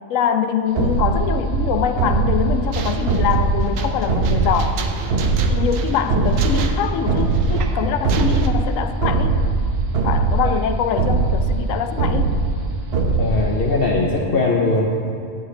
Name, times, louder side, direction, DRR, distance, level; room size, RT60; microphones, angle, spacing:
voice 1, 0.1-4.8 5.5-9.3 10.0-12.3, left 8 dB, 85° left, 8 dB, 1.0 m, -23 dB
sound 1, 0.8-13.9, right 3 dB, 55° right, 1.0 m, -21 dB
sound 2, 2.3-8.5, right 5 dB, 85° right, 1.1 m, -31 dB
voice 2, 13.0-15.1, left 2 dB, 55° left, -2 dB, 0.8 m, -20 dB
11.0 x 9.6 x 3.2 m, 2.4 s
omnidirectional pair, 1.3 m